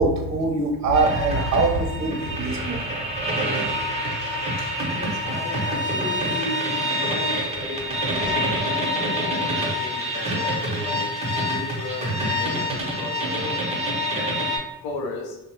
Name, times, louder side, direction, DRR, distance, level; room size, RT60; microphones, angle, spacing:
voice 1, 0.0-2.9, right 3 dB, 45° right, 2 dB, 0.7 m, -23 dB
sound 1, 0.9-14.6, equal, 15° right, 0.9 m, -26 dB
voice 2, 4.3-11.1 11.4-13.7 14.1-14.4 14.8-15.4, left 2 dB, 75° left, 3 dB, 0.6 m, -36 dB
2.6 x 2.1 x 2.9 m, 1.0 s
hypercardioid pair, 50°, 38 cm